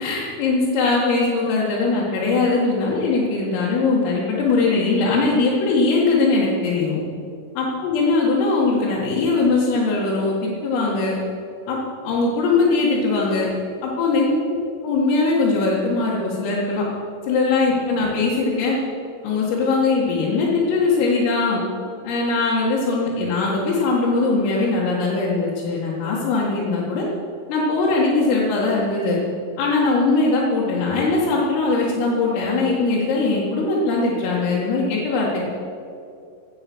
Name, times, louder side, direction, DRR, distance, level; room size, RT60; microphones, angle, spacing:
voice 1, 0.0-7.0 7.6-11.2 11.7-13.5 13.8-14.3 14.8-16.8 17.2-18.8 19.2-21.6 22.0-27.0 27.5-29.2 29.6-35.5, left 3 dB, 85° left, -7 dB, 4.5 m, -20 dB
16.5 x 9.4 x 6.2 m, 2.5 s
omnidirectional pair, 5.8 m